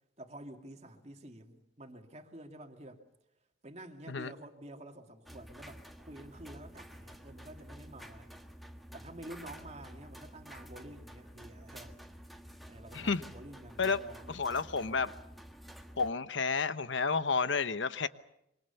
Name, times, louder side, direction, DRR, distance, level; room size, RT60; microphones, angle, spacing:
voice 1, 0.2-3.0 3.6-8.3 8.9-12.0 12.7-14.4, right 1 dB, 35° right, 2.4 m, -49 dB
sound 1, 5.3-16.1, equal, ahead, 1.4 m, -50 dB
voice 2, 14.3-15.1 16.0-18.1, left 4 dB, 75° left, 1.0 m, -31 dB
26.5 x 24.0 x 6.9 m
head